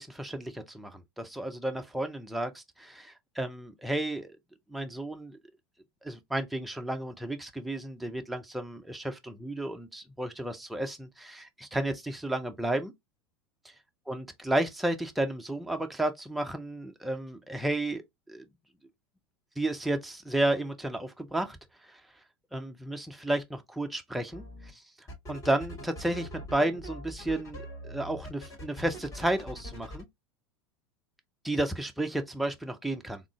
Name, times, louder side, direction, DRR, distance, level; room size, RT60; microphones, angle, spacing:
voice 1, 0.0-4.3 4.7-5.4 6.0-12.9 14.1-18.0 18.3-18.4 19.6-21.6 21.8-22.0 22.5-24.4 25.3-30.1 31.4-33.2, right 1 dB, ahead, 0.5 m, -32 dB
sound 1, 24.3-24.7 25.1-30.0, equal, 25° left, 2.1 m, -42 dB
3.6 x 2.1 x 3.5 m
figure-of-eight pair, 85°, 14 cm